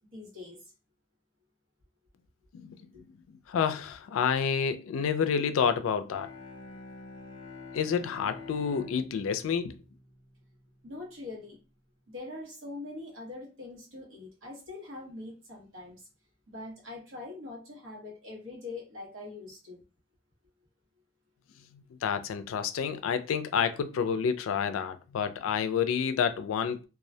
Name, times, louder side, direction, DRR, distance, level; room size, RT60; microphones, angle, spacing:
voice 1, 0.1-0.6 2.9-3.0 10.8-11.6 12.1-16.0 16.5-19.8, left 2 dB, 80° right, 1.0 m, -43 dB
voice 2, 3.3-6.3 7.7-9.8 21.7-26.9, left 7 dB, 85° left, 0.3 m, -29 dB
Bowed string instrument, 6.0-10.9, left 3 dB, 25° left, 0.6 m, -47 dB
2.3 x 2.0 x 2.7 m
head